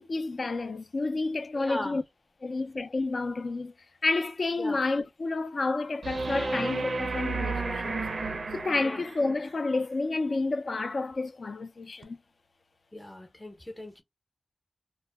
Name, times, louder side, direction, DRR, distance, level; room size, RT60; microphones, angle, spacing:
voice 1, 0.0-2.0 2.4-3.7 4.0-8.0 8.5-12.2, left 3 dB, 60° left, 0.4 m, -30 dB
voice 2, 1.5-2.0 4.6-4.8 8.8-9.1 12.9-14.0, left 1 dB, 20° left, 0.7 m, -39 dB
sound 1, 6.0-9.4 12.0-12.1, right 3 dB, 65° right, 0.4 m, -32 dB
2.1 x 2.0 x 3.2 m
wide cardioid pair, 80°, 0 cm